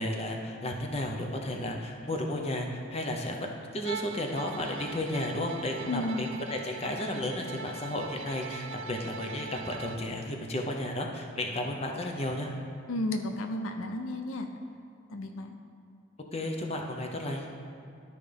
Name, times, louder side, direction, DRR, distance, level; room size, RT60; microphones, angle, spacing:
voice 1, 0.0-12.5 16.3-17.5, left 1 dB, 30° left, 1 dB, 0.7 m, -33 dB
Bowed string instrument, 3.8-10.1, right 5 dB, 65° right, 0.4 m, -42 dB
voice 2, 5.9-6.3 12.9-14.5 15.1-15.6, left 1 dB, 75° left, 5 dB, 0.5 m, -33 dB
12.5 x 5.0 x 3.4 m, 2.5 s
head